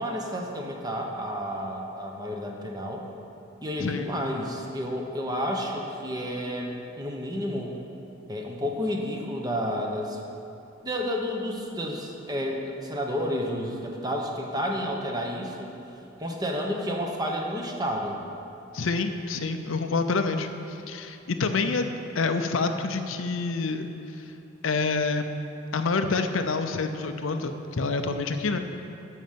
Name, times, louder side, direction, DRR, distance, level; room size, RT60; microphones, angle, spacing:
voice 1, 0.0-3.0 3.6-7.7 8.3-10.2 10.8-15.7 16.2-18.2, equal, 20° right, 0 dB, 1.0 m, -31 dB
voice 2, 18.7-21.9 22.1-23.9 24.2-24.3 24.6-25.3 25.7-28.6, left 4 dB, 70° left, 7 dB, 0.6 m, -27 dB
9.4 x 6.4 x 7.5 m, 2.9 s
head